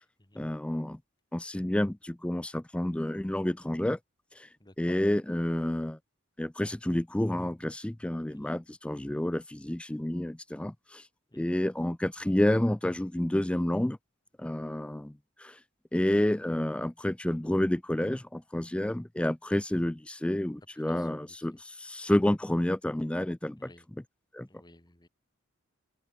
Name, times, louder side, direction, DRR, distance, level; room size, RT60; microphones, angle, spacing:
voice 1, 0.4-1.0 1.3-4.0 4.4-4.5 4.8-6.0 6.4-11.0 11.3-14.0 14.4-15.1 15.4-15.6 15.9-23.7 24.3-24.5, left 1 dB, 5° left, 0.3 m, -29 dB
voice 2, 4.6-5.0 8.3-8.6 11.3-11.5 20.7-21.6 23.6-23.9 24.5-25.1, left 1 dB, 20° left, 1.9 m, -56 dB
open air
head